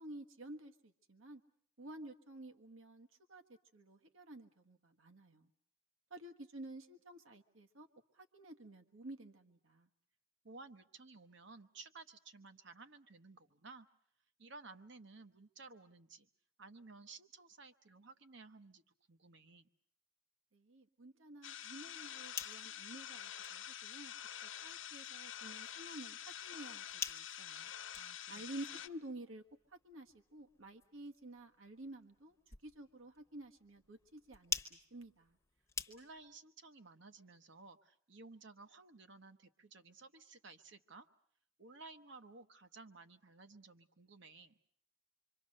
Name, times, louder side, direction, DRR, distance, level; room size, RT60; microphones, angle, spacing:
voice 1, 0.0-1.4 1.8-3.4 3.7-5.5 6.1-7.9 8.1-9.9 20.5-24.1 24.4-27.7 28.3-29.4 29.7-35.4, right 1 dB, 70° right, 5 dB, 1.5 m, -52 dB
voice 2, 10.4-13.9 14.4-16.3 16.6-18.8 19.1-19.7 28.0-28.4 35.9-41.1 41.6-44.6, right 3 dB, 55° right, 9 dB, 1.1 m, -56 dB
sound 1, 21.4-28.9, left 10 dB, 65° left, 1.1 m, -47 dB
sound 2, 22.0-36.4, left 6 dB, 15° left, 1.0 m, -50 dB
26.5 x 24.0 x 6.6 m, 0.65 s
head